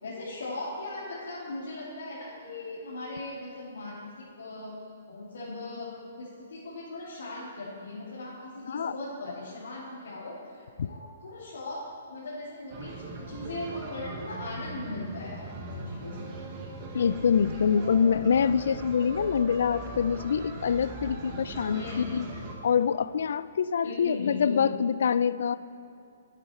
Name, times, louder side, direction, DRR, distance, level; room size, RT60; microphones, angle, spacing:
voice 1, 0.0-4.7 5.1-5.9 6.2-11.8 12.1-15.5 15.8-16.3 21.7-22.1 23.8-24.7, left 2 dB, 75° left, -7 dB, 2.7 m, -38 dB
sound 1, 12.7-22.6, right 2 dB, 20° right, 1.0 m, -40 dB
voice 2, 16.9-21.9 22.1-22.2 22.6-25.6, left 7 dB, 55° left, 16 dB, 0.3 m, -25 dB
12.0 x 9.1 x 4.4 m, 2.6 s
hypercardioid pair, 180°, 0 cm